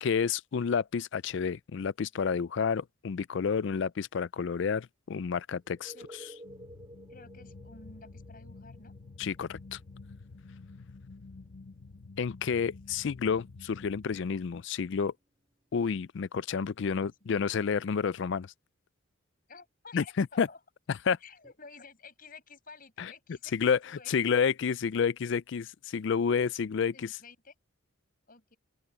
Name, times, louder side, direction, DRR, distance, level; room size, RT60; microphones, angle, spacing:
voice 1, 0.0-6.3 9.2-9.8 12.2-15.1 15.7-18.5 19.9-20.5 20.9-21.2 23.0-23.1 23.5-27.2, left 6 dB, 60° left, 0.4 m, -30 dB
sound 1, 5.6-17.2 21.4-21.5, right 1 dB, 20° right, 4.6 m, -56 dB
sound 2, 6.4-14.2, left 3 dB, 80° left, 0.8 m, -50 dB
voice 2, 7.1-8.9 16.9-17.3 19.5-20.6 21.2-24.1 26.9-27.5 28.3-28.6, left 4 dB, 45° left, 7.1 m, -52 dB
open air
head